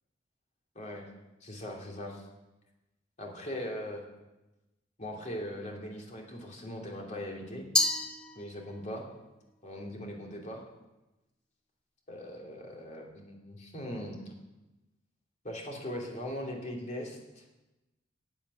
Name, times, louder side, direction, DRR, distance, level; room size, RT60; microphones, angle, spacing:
voice 1, 0.7-1.1 1.4-2.2 3.2-4.0 5.0-7.6 8.3-9.1 9.6-10.6 12.1-14.3 15.4-17.4, equal, 40° left, -1 dB, 2.8 m, -40 dB
Glass, 7.8-9.0, left 2 dB, 5° left, 0.7 m, -30 dB
11.5 x 7.1 x 9.7 m, 1.0 s
head